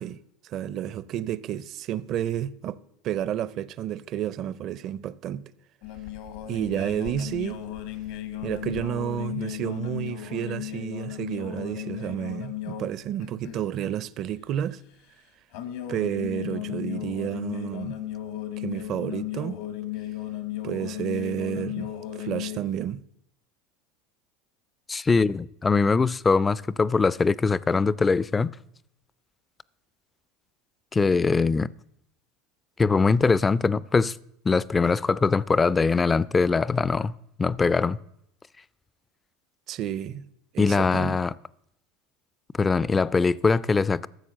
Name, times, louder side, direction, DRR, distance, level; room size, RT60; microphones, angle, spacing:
voice 1, 0.0-2.8 3.0-5.4 6.5-7.6 8.4-14.8 15.9-17.9 18.6-19.6 20.6-23.0 39.7-40.3 40.5-41.2, right 10 dB, 45° right, 0.5 m, -31 dB
sound 1, 5.8-12.9 13.2-13.6 15.5-22.6, left 12 dB, 75° left, 1.2 m, -35 dB
voice 2, 24.9-28.5 30.9-31.7 32.8-34.2 34.5-37.1 37.4-38.0 40.6-41.3 42.6-44.1, left 4 dB, 15° left, 0.3 m, -22 dB
13.0 x 7.3 x 6.4 m
supercardioid pair, 125°, 0 cm